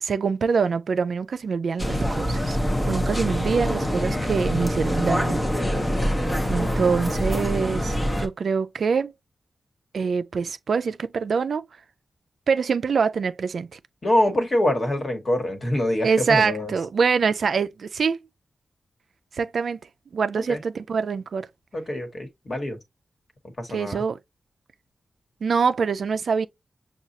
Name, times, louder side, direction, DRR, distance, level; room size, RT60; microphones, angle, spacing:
voice 1, 0.0-2.6 2.8-5.4 6.5-9.1 9.9-11.6 12.5-13.8 16.0-18.2 19.3-19.8 20.1-21.5 23.7-24.2 25.4-26.5, right 5 dB, 70° right, 0.4 m, -24 dB
sound 1, 1.8-8.3, equal, 15° left, 0.8 m, -25 dB
voice 2, 14.0-16.7 20.5-20.6 21.7-22.8 23.6-24.0, left 1 dB, 40° left, 1.3 m, -25 dB
6.2 x 2.4 x 2.7 m
wide cardioid pair, 95°, 0 cm